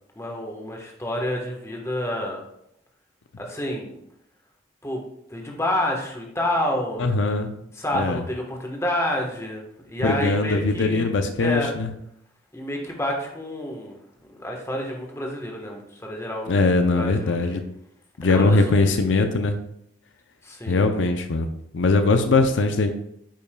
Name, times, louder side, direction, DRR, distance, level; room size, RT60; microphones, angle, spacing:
voice 1, 0.2-2.4 3.4-3.9 4.8-5.0 5.3-7.0 7.7-9.6 9.9-11.1 11.4-11.7 12.5-14.0 14.4-16.6 16.9-17.6 18.3-18.6 18.9-19.0 20.4-20.9, left 1 dB, 15° left, 0 dB, 1.2 m, -28 dB
voice 2, 7.0-7.5 7.9-8.2 10.0-11.9 16.5-17.6 18.2-19.6 20.7-21.5 21.7-22.9, left 3 dB, 80° left, 7 dB, 0.5 m, -21 dB
8.8 x 5.5 x 2.2 m, 0.75 s
head